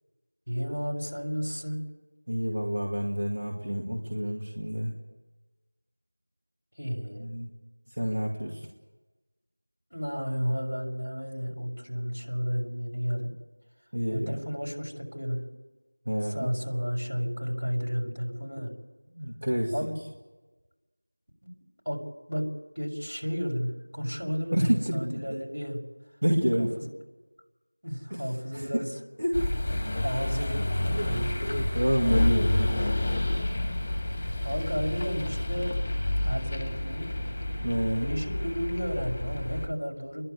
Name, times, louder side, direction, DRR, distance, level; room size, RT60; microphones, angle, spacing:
voice 1, 0.5-1.8 6.8-7.3 9.9-13.3 14.1-15.4 16.2-18.7 19.7-20.0 21.4-21.5 21.8-22.0 22.3-22.5 22.7-25.8 26.6-26.7 27.8-28.9 30.0-31.3 34.4-35.7 36.2-37.1 38.0-40.3, equal, 75° right, 0 dB, 6.2 m, -32 dB
voice 2, 2.3-4.9 7.2-7.5 8.0-8.7 13.9-14.4 16.1-16.5 19.2-19.7 24.5-25.4 26.2-26.7 28.1-28.2 28.5-28.8 29.2-29.4 30.9-32.7 37.6-38.1, equal, 30° right, -3 dB, 2.4 m, -28 dB
sound 1, 29.3-39.7, left 1 dB, 15° left, 1.4 m, -29 dB
30.0 x 11.5 x 9.8 m, 1.2 s
figure-of-eight pair, 175°, 0 cm